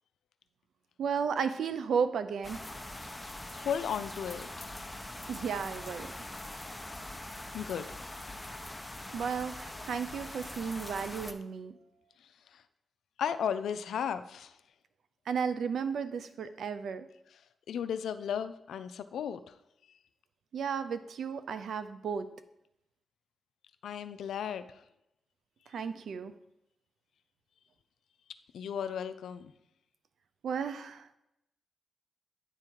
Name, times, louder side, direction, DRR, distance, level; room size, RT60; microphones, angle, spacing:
voice 1, 1.0-2.6 5.3-6.1 9.1-11.8 15.3-17.1 20.5-22.3 25.7-26.3 30.4-31.2, right 6 dB, 75° right, 11 dB, 0.5 m, -34 dB
sound 1, 2.4-11.3, left 1 dB, 15° left, 0.8 m, -43 dB
voice 2, 3.5-4.7 7.5-8.0 12.2-12.6 13.2-14.6 17.3-17.4 17.7-19.6 19.9-20.0 23.8-24.8 28.5-29.5, left 8 dB, 85° left, 12 dB, 0.4 m, -35 dB
9.6 x 3.7 x 4.5 m, 0.85 s
cardioid pair, 55°, 0 cm